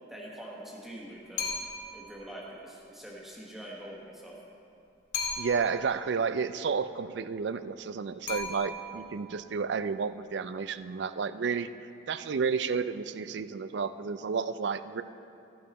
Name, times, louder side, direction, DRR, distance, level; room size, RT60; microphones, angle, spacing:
voice 1, 0.1-1.5 1.9-4.3, right 1 dB, ahead, -4 dB, 1.3 m, -44 dB
sound 1, 1.4-2.0 5.1-5.8 8.3-9.1, left 3 dB, 90° left, 2.2 m, -35 dB
voice 2, 5.4-11.7 12.1-15.0, right 5 dB, 70° right, 13 dB, 0.4 m, -31 dB
13.5 x 9.4 x 4.1 m, 2.7 s
head